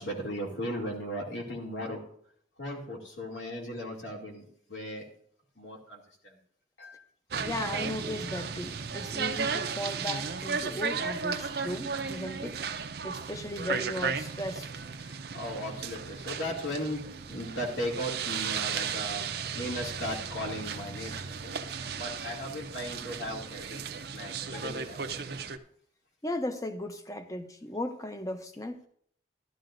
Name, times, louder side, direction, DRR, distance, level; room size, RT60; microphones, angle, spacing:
voice 1, 0.0-2.0 2.6-5.0 5.6-6.3 6.8-7.0 15.0-17.0 17.3-23.8 24.1-25.3, equal, 75° left, 2.5 m, -37 dB
sound 1, 7.3-25.6, right 6 dB, 55° right, 0.5 m, -35 dB
voice 2, 7.4-12.6 13.0-14.7 24.5-24.7 26.2-28.8, left 1 dB, 20° left, 0.6 m, -36 dB
13.0 x 12.5 x 2.6 m
head